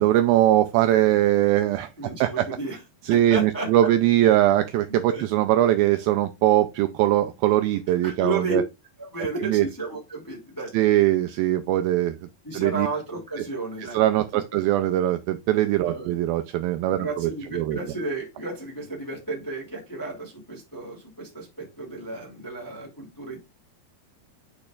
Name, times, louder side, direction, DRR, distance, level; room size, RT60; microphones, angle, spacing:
voice 1, 0.0-1.9 2.2-2.5 3.1-8.6 9.4-9.7 10.7-12.2 12.5-12.9 13.9-17.8, right 13 dB, 80° right, 2.2 m, -21 dB
voice 2, 2.0-2.8 3.1-3.9 4.9-5.2 8.0-8.6 9.0-10.7 12.4-14.0 14.3-14.6 15.8-16.1 17.0-23.4, right 3 dB, 10° left, 1.5 m, -33 dB
10.5 x 4.9 x 2.4 m
omnidirectional pair, 4.7 m